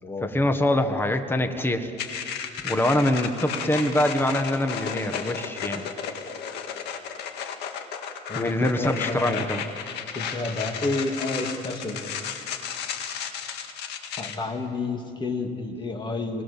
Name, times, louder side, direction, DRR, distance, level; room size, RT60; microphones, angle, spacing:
voice 1, 0.2-1.9 2.6-5.9 8.3-9.7, left 1 dB, 15° left, 7 dB, 1.5 m, -24 dB
sound 1, 2.0-14.4, left 7 dB, 80° left, 2.1 m, -34 dB
voice 2, 8.3-9.5 10.1-12.0 14.2-16.4, left 3 dB, 30° left, 3 dB, 2.9 m, -30 dB
27.5 x 20.0 x 7.4 m, 2.5 s
cardioid pair, 110°, 17 cm